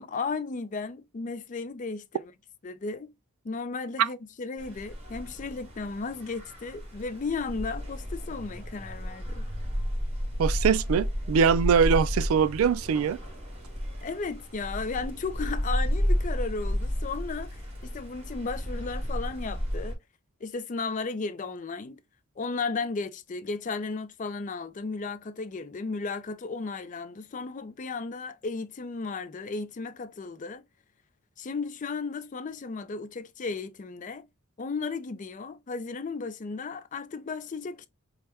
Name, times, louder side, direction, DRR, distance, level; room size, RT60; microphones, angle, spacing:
voice 1, 0.0-2.3 2.6-3.1 3.4-9.5 14.0-20.0 20.4-22.0 22.4-30.6 31.4-34.3 34.6-37.9, left 4 dB, 35° left, 0.4 m, -35 dB
sound 1, 4.6-19.9, equal, 30° right, 1.5 m, -32 dB
voice 2, 10.4-13.2, right 6 dB, 80° right, 0.3 m, -23 dB
3.4 x 2.1 x 4.2 m
head